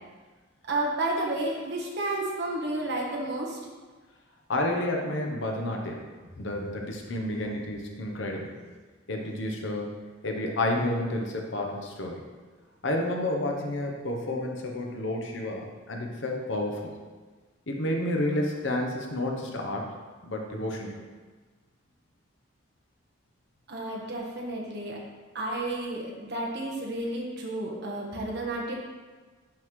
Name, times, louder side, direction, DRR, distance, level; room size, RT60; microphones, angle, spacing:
voice 1, 0.7-3.6 23.7-25.0 25.3-28.8, right 2 dB, 55° right, -2 dB, 1.3 m, -31 dB
voice 2, 4.5-6.0 6.4-8.6 9.1-12.2 12.8-16.9 17.7-19.9 20.2-21.0, left 1 dB, 60° left, 1 dB, 0.9 m, -30 dB
10.5 x 3.9 x 3.2 m, 1.4 s
head